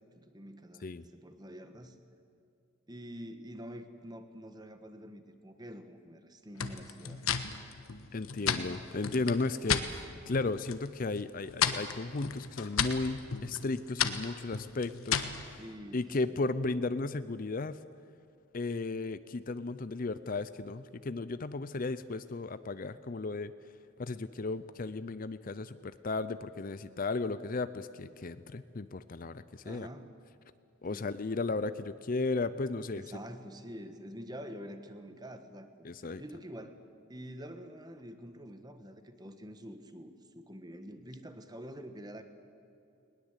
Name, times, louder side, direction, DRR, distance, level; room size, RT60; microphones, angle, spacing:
voice 1, 0.2-2.0 2.9-7.4 15.6-16.5 29.6-30.1 30.9-31.1 32.9-36.8 37.1-42.2, equal, 20° right, 8 dB, 1.3 m, -47 dB
sound 1, 6.6-9.9 10.3-10.9 11.2-15.4, left 7 dB, 85° left, 1.3 m, -33 dB
voice 2, 8.1-15.6 15.9-17.8 18.5-23.5 24.0-29.9 30.8-33.0 35.8-36.2, left 3 dB, 40° left, 14 dB, 0.5 m, -35 dB
20.5 x 20.0 x 8.2 m, 2.7 s
head